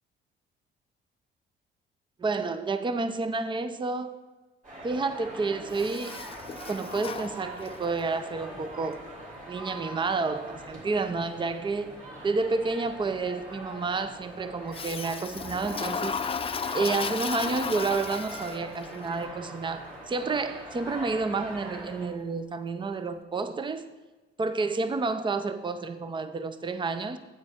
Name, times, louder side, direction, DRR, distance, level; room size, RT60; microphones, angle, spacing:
voice 1, 2.2-4.2 4.8-6.2 6.7-9.0 9.5-16.2 16.7-23.9 24.4-27.2, right 4 dB, 25° right, 0.6 m, -30 dB
sound 1, 4.6-22.1, right 1 dB, 40° right, 3.4 m, -43 dB
Toilet flush, 5.7-8.0 14.7-18.9, left 6 dB, 30° left, 0.4 m, -34 dB
9.4 x 8.3 x 3.6 m
cardioid pair, 90°, 20 cm